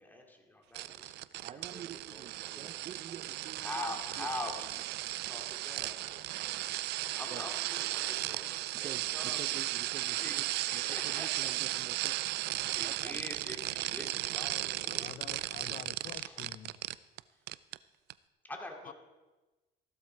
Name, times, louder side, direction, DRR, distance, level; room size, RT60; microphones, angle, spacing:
voice 1, 0.0-2.7 3.6-6.3 7.2-9.4 10.1-11.5 12.8-15.4 16.1-16.4 17.3-17.4 18.4-18.9, left 1 dB, 10° left, 2 dB, 2.6 m, -45 dB
sound 1, 0.7-17.2 17.5-17.8 18.1-18.2, right 16 dB, 80° right, 0.5 m, -36 dB
voice 2, 1.4-3.7 4.2-4.3 7.3-7.4 8.8-10.4 10.7-12.2 12.6-13.2, right 8 dB, 45° right, 14 dB, 0.7 m, -48 dB
voice 3, 14.8-16.8 18.8-18.9, left 10 dB, 50° left, 15 dB, 0.7 m, -48 dB
15.5 x 12.0 x 4.7 m, 1.2 s
cardioid pair, 110°, 17 cm